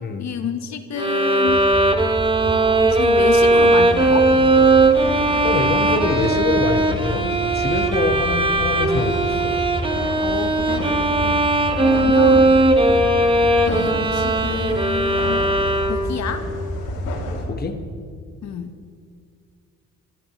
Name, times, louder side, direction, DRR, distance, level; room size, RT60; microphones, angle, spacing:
voice 1, 0.2-1.7 2.4-4.3 10.2-10.9 11.8-12.6 13.6-15.6 15.9-16.4 18.4-18.7, left 7 dB, 65° left, 7 dB, 1.2 m, -29 dB
Bowed string instrument, 1.0-16.3, right 2 dB, 15° right, 1.1 m, -18 dB
sound 1, 1.5-17.6, equal, 15° left, 4.1 m, -31 dB
sound 2, 3.1-17.4, left 3 dB, 90° left, 2.9 m, -34 dB
voice 2, 5.4-7.3 7.5-9.5 11.2-11.5 12.9-13.0 17.4-17.8, left 3 dB, 30° left, 5 dB, 1.4 m, -25 dB
25.0 x 14.5 x 3.2 m, 2.1 s
cardioid pair, 90°, 30 cm